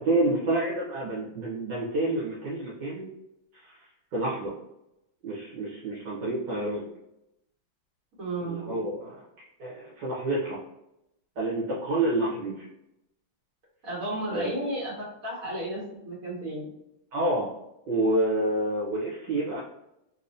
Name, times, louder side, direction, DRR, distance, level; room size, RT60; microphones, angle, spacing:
voice 1, 0.0-3.1 3.5-3.8 4.1-4.5 5.2-6.9 8.5-10.6 11.3-12.6 14.3-14.6 17.1-17.5 17.9-19.6, right 1 dB, 70° right, -7 dB, 1.7 m, -28 dB
voice 2, 8.2-8.6 13.8-16.7, right 1 dB, 45° right, -6 dB, 1.8 m, -33 dB
3.5 x 2.9 x 2.6 m, 0.84 s
omnidirectional pair, 2.1 m